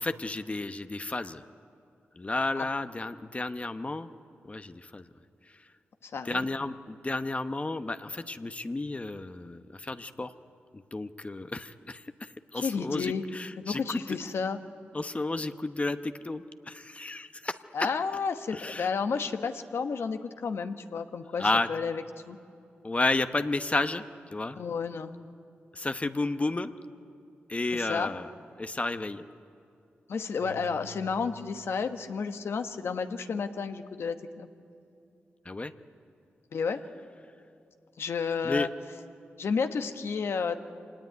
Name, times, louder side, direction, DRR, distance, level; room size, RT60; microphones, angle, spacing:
voice 1, 0.0-1.4 2.2-4.1 4.4-5.0 6.2-10.3 10.7-14.2 14.9-17.6 18.5-18.9 21.4-21.7 22.8-24.0 24.3-24.6 25.7-26.7 27.5-28.3 28.6-29.2 35.4-35.7 38.4-38.7, left 2 dB, 30° left, 10 dB, 1.0 m, -32 dB
voice 2, 6.0-6.4 12.6-13.3 13.6-14.6 17.7-22.4 24.6-25.1 27.7-28.1 30.1-34.5 36.5-36.8 38.0-38.7 39.4-40.6, left 5 dB, 75° left, 8 dB, 1.2 m, -31 dB
Keyboard (musical), 30.4-32.7, right 6 dB, 85° right, 0.9 m, -51 dB
25.0 x 19.0 x 9.5 m, 2.6 s
cardioid pair, 55°, 4 cm